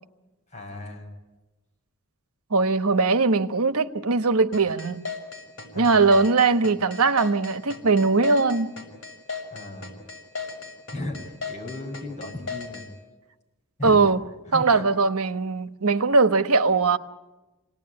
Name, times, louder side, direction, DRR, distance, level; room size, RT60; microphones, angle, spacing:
voice 1, 0.5-1.1 5.7-6.1 9.5-9.9 10.9-12.8 13.8-14.1 14.5-14.9, left 2 dB, 30° left, 6.2 m, -36 dB
voice 2, 2.5-5.1 5.7-8.7 13.8-14.2 14.5-17.0, right 4 dB, 85° right, 1.2 m, -20 dB
sound 1, 4.5-12.9, left 4 dB, 65° left, 6.4 m, -35 dB
28.0 x 19.0 x 9.8 m
head